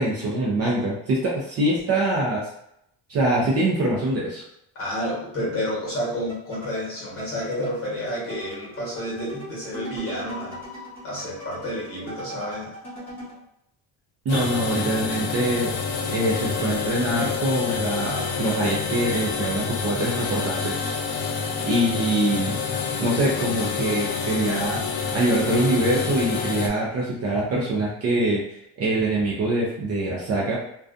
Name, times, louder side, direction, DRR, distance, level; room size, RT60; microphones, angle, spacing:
voice 1, 0.0-2.5 3.1-4.4 14.3-15.7 16.1-20.7 21.6-22.6 23.0-28.5 28.8-30.6, right 1 dB, 35° right, -4 dB, 0.4 m, -24 dB
voice 2, 4.7-10.6 11.0-12.7, equal, 30° left, -6 dB, 1.1 m, -30 dB
sound 1, 6.3-13.4, right 1 dB, 5° left, 0.9 m, -39 dB
sound 2, 14.3-26.7, left 5 dB, 75° left, 0.6 m, -28 dB
2.4 x 2.3 x 2.4 m, 0.76 s
cardioid pair, 170°, 42 cm